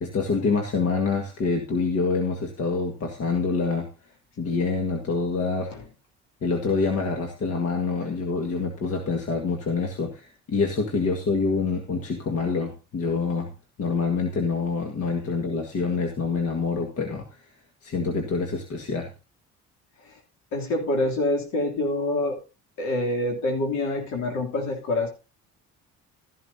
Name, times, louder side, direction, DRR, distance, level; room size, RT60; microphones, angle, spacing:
voice 1, 0.0-3.9 4.4-5.7 6.4-13.5 13.8-17.3 17.8-19.1, left 4 dB, 55° left, 3 dB, 1.8 m, -26 dB
voice 2, 20.5-22.4 22.8-25.1, left 1 dB, 70° left, 1 dB, 3.1 m, -26 dB
13.5 x 11.0 x 2.8 m, 0.30 s
cardioid pair, 90°, 29 cm